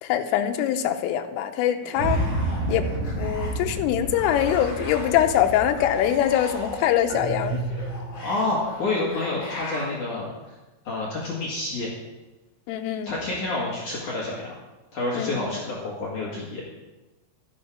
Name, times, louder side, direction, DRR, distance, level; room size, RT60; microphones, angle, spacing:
voice 1, 0.0-2.2 2.7-2.9 3.2-7.6 12.7-13.1 15.1-15.4, left 11 dB, 80° left, 5 dB, 3.3 m, -23 dB
sound 1, 1.8-3.7 4.0-10.0, left 1 dB, 30° left, 4.0 m, -39 dB
sound 2, 2.0-8.1, right 2 dB, 70° right, 3.0 m, -30 dB
sound 3, 7.1-8.6, right 4 dB, 85° right, 2.5 m, -31 dB
voice 2, 8.2-10.5 10.8-11.9 13.0-14.5 14.9-16.6, left 2 dB, 50° left, -5 dB, 2.6 m, -28 dB
13.5 x 10.0 x 5.0 m, 1.1 s
omnidirectional pair, 5.9 m